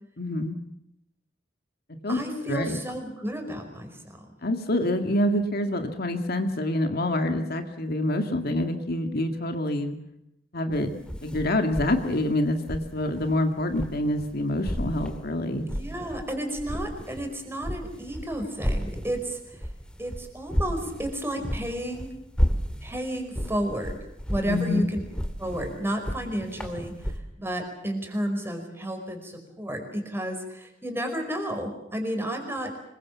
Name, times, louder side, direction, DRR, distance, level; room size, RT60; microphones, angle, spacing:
voice 1, 0.2-0.6 2.0-2.2 2.5-2.8 4.4-10.0 10.5-10.9 11.2-15.6 24.5-24.8, left 1 dB, 55° left, 6 dB, 2.0 m, -26 dB
voice 2, 2.1-4.0 15.7-19.6 20.0-22.1 22.8-24.0 24.3-25.0 25.4-27.1 27.4-32.7, equal, 10° right, 5 dB, 5.1 m, -32 dB
sound 1, 10.7-14.3 14.6-16.3 16.5-27.2, equal, 5° left, 2.4 m, -32 dB
25.5 x 22.5 x 7.4 m, 0.82 s
head